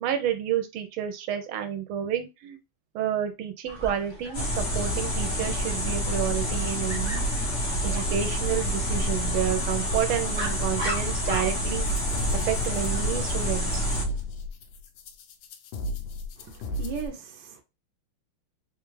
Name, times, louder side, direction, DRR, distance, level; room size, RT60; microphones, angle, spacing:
voice 1, 0.0-2.6 2.9-7.3 7.8-11.9 12.5-13.9, right 10 dB, 90° right, 1.5 m, -30 dB
Dog, 3.7-14.2, right 1 dB, 25° right, 0.6 m, -41 dB
sound 1, 4.3-14.1, equal, 40° left, 1.2 m, -28 dB
sound 2, 11.8-17.1, left 1 dB, 75° left, 1.3 m, -35 dB
voice 2, 16.4-17.6, right 7 dB, 65° right, 1.3 m, -37 dB
3.7 x 2.4 x 3.1 m
omnidirectional pair, 2.3 m